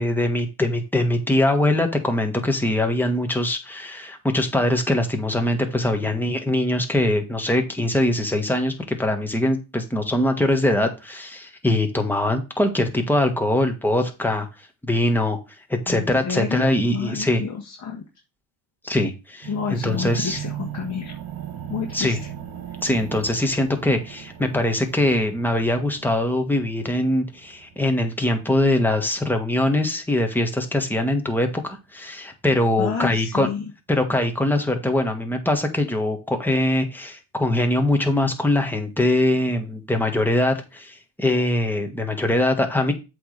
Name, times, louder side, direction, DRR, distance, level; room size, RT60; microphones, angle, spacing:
voice 1, 0.0-14.5 14.8-15.4 15.7-17.4 18.8-20.4 21.9-22.2 22.8-33.5 33.9-42.9, left 1 dB, 5° left, 4 dB, 1.5 m, -22 dB
voice 2, 15.9-18.0 19.5-21.2 21.7-22.3 32.8-33.7, left 6 dB, 35° left, -1 dB, 1.7 m, -30 dB
sound 1, 19.4-29.4, right 10 dB, 45° right, 1.4 m, -38 dB
7.8 x 3.5 x 6.5 m, 0.29 s
supercardioid pair, 95°, 49 cm